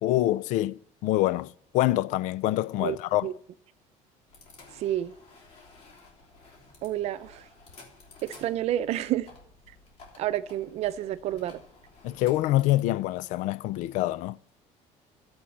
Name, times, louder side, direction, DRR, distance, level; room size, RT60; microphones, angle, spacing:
voice 1, 0.0-3.3 12.0-14.4, left 15 dB, 70° left, 0.4 m, -26 dB
sound 1, 4.3-12.8, left 3 dB, 50° left, 3.3 m, -53 dB
voice 2, 4.8-5.1 6.8-7.4 8.2-9.3 10.2-11.6, right 13 dB, 55° right, 0.6 m, -29 dB
13.0 x 7.9 x 7.3 m
cardioid pair, 165°, 13 cm